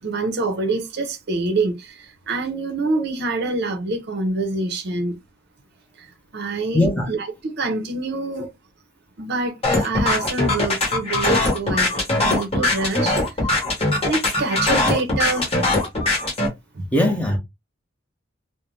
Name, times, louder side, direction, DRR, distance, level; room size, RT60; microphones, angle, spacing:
voice 1, 0.0-5.2 6.0-8.5 9.2-13.2 13.5-13.6 14.0-15.7 16.7-16.9, right 3 dB, 55° right, 0.6 m, -26 dB
voice 2, 6.7-7.1 16.9-17.4, left 1 dB, 5° left, 0.6 m, -19 dB
sound 1, 9.6-16.5, left 2 dB, 30° left, 0.9 m, -21 dB
2.5 x 2.1 x 3.1 m
head